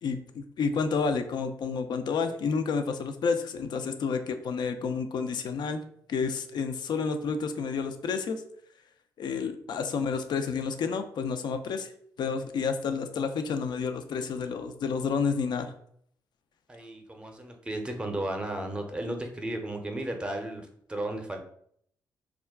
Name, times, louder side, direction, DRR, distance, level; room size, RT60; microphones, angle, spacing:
voice 1, 0.0-5.8 6.1-8.4 9.2-11.9 12.2-15.7, left 5 dB, 60° left, 8 dB, 0.4 m, -30 dB
voice 2, 16.7-21.4, right 1 dB, 10° right, 4 dB, 0.6 m, -34 dB
2.3 x 2.1 x 3.5 m, 0.65 s
hypercardioid pair, 45°, 8 cm